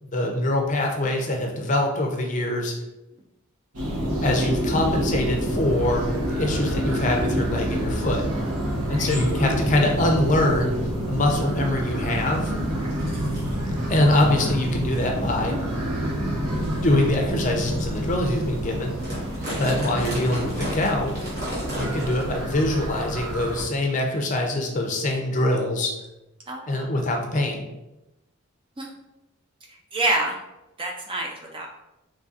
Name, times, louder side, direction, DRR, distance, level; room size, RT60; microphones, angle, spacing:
voice 1, 0.0-2.7 4.2-8.2 8.9-10.8 11.1-12.5 13.9-15.6 16.7-18.9 19.5-21.1 21.7-25.9 26.7-27.7, left 1 dB, 35° left, 2 dB, 0.5 m, -24 dB
sound 1, 3.7-23.6, equal, 85° right, 1.0 m, -27 dB
sound 2, 13.0-13.5 14.3-14.4 15.1-15.3 15.9-16.0 16.7-16.8 17.4-17.5 17.9-18.0 18.2-18.5 18.7-22.4 22.7-22.8 23.6-23.7, equal, 45° right, 1.4 m, -34 dB
voice 2, 26.5-26.9 28.8-28.9 29.9-30.4 30.8-31.7, right 2 dB, 25° right, 1 dB, 0.4 m, -27 dB
3.9 x 3.2 x 2.4 m, 0.94 s
head